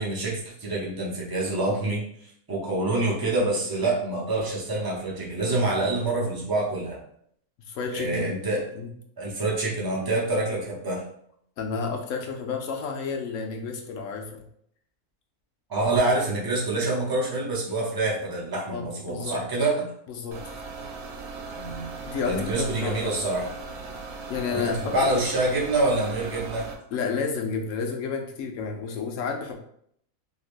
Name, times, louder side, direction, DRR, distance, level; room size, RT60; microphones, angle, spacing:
voice 1, 0.0-2.0 2.5-7.0 7.9-8.6 9.2-11.0 15.7-19.9 21.6-21.9 22.2-23.4 24.5-26.7, right 2 dB, 30° right, -3 dB, 0.4 m, -26 dB
voice 2, 7.7-8.2 8.7-8.9 11.6-14.4 18.7-19.4 20.1-20.4 22.1-23.2 24.3-25.3 26.9-29.5, left 5 dB, 70° left, 2 dB, 0.9 m, -31 dB
sound 1, 20.3-26.7, right 4 dB, 85° right, 1.1 m, -38 dB
3.3 x 2.8 x 2.5 m, 0.68 s
omnidirectional pair, 1.5 m